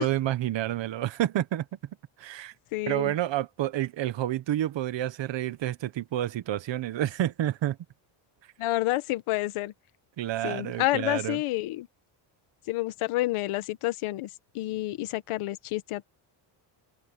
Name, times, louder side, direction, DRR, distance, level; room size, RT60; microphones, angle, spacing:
voice 1, 0.0-1.7 2.2-2.5 2.9-7.8 10.2-11.4, right 13 dB, 60° right, 1.4 m, -29 dB
voice 2, 2.7-3.1 8.6-9.7 10.4-11.9 12.7-14.3 14.5-16.0, left 17 dB, 85° left, 1.4 m, -29 dB
cardioid pair, 120°, 49 cm